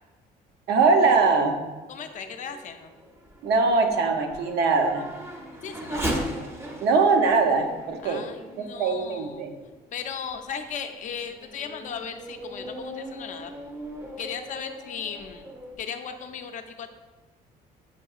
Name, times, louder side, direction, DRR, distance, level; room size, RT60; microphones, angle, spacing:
voice 1, 0.7-1.6 3.4-5.0 6.8-8.2 8.7-9.5, right 4 dB, 75° right, 4 dB, 0.7 m, -21 dB
Race car auto racing / Accelerating revving vroom, 1.7-9.7 10.3-10.4 11.0-15.8, right 1 dB, 15° right, 0.6 m, -38 dB
voice 2, 1.9-2.9 5.6-6.3 8.0-9.4 9.9-13.5 14.2-15.5 15.8-16.9, left 7 dB, 50° left, 7 dB, 0.4 m, -36 dB
7.2 x 2.7 x 2.4 m, 1.2 s
cardioid pair, 110°, 17 cm